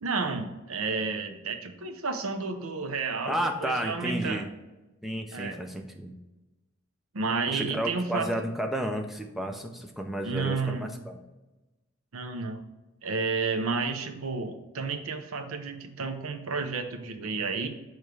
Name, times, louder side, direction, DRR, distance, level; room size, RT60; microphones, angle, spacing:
voice 1, 0.0-4.5 5.3-5.6 7.1-8.3 10.2-11.0 12.1-12.6 13.0-17.7, right 4 dB, 75° right, 7 dB, 0.6 m, -31 dB
voice 2, 3.3-4.5 5.0-6.1 7.5-11.2, equal, ahead, 3 dB, 0.4 m, -32 dB
6.7 x 3.1 x 4.6 m, 1.1 s
head